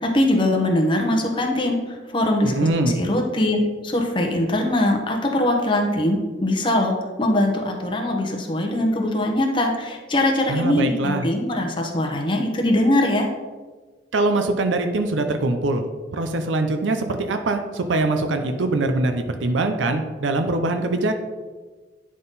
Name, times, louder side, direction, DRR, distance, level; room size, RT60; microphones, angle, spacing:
voice 1, 0.0-1.8 2.1-2.7 3.0-13.3, left 1 dB, 25° left, 2 dB, 0.9 m, -21 dB
voice 2, 2.4-3.0 10.5-11.3 14.1-15.8 16.1-21.2, right 2 dB, 90° right, 6 dB, 0.6 m, -23 dB
9.6 x 3.7 x 4.0 m, 1.3 s
head